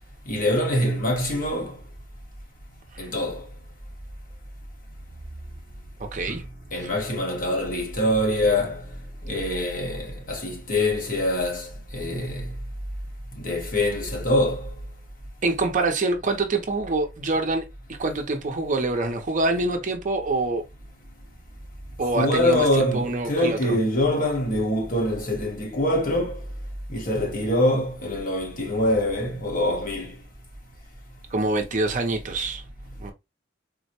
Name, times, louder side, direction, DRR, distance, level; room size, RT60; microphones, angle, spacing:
voice 1, 0.2-1.8 3.0-3.5 6.3-8.9 9.2-12.5 13.4-14.7 22.0-26.5 26.9-30.2, left 1 dB, 45° left, 1.1 m, -24 dB
voice 2, 6.1-6.4 6.8-6.9 15.4-17.6 18.0-20.6 22.0-22.7 22.9-23.8 31.3-32.6 33.0-33.1, right 2 dB, 40° right, 0.6 m, -25 dB
3.8 x 2.1 x 2.8 m
head